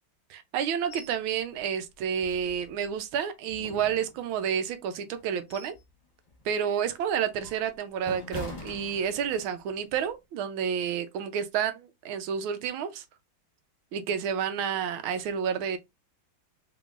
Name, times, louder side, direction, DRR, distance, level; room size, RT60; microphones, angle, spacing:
voice 1, 0.3-5.7 6.4-13.0 13.9-15.8, right 8 dB, 85° right, 1.5 m, -30 dB
sound 1, 0.9-1.2 1.6-1.7 2.2-3.0 3.5-4.5 5.1-5.9 6.3-6.5 7.1-9.5 9.9-10.1, left 2 dB, 30° left, 1.1 m, -43 dB
3.8 x 3.4 x 2.4 m
omnidirectional pair, 2.2 m